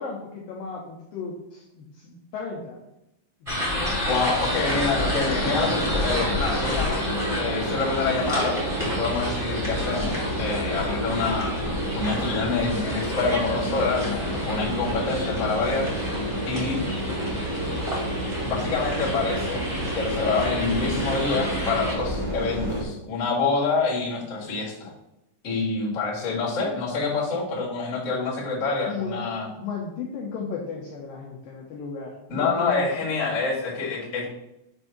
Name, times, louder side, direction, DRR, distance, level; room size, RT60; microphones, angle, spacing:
voice 1, 0.0-2.8 3.4-4.4 28.9-29.3 29.6-32.9, left 4 dB, 90° left, -2 dB, 2.0 m, -35 dB
sound 1, 3.4-21.9, equal, 25° right, 0.7 m, -30 dB
voice 2, 4.1-7.1 7.4-11.6 11.9-15.9 16.1-16.8 18.4-19.6 19.9-24.9 25.4-29.5 32.3-34.3, left 4 dB, 75° left, -5 dB, 0.7 m, -27 dB
sound 2, 4.6-22.8, equal, 80° right, 0.7 m, -30 dB
7.3 x 2.7 x 5.8 m, 0.87 s
omnidirectional pair, 5.1 m